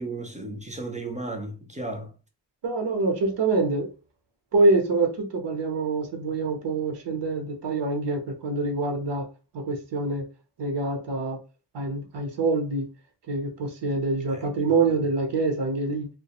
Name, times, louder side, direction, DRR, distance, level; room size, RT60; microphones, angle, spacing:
voice 1, 0.0-2.1 14.3-14.4, right 2 dB, 20° right, 0.4 m, -34 dB
voice 2, 2.6-3.9 4.5-9.3 9.5-10.2 10.6-11.4 11.7-12.9 13.3-16.1, right 3 dB, 80° right, 0.7 m, -25 dB
2.3 x 2.1 x 2.9 m
wide cardioid pair, 95°, 42 cm